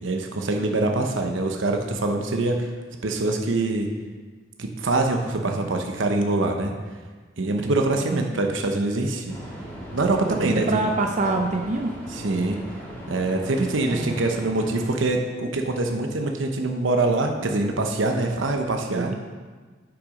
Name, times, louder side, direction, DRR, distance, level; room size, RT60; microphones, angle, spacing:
voice 1, 0.0-2.7 3.0-3.9 4.6-6.7 7.4-9.4 9.9-10.9 11.2-11.4 12.1-12.6 13.1-19.1, right 2 dB, 75° right, 3 dB, 0.9 m, -24 dB
sound 1, 9.3-14.9, equal, 10° left, 2.2 m, -38 dB
voice 2, 10.7-12.0 13.8-14.2 18.9-19.1, right 2 dB, 40° right, 3 dB, 0.5 m, -26 dB
8.6 x 6.0 x 5.3 m, 1.4 s
head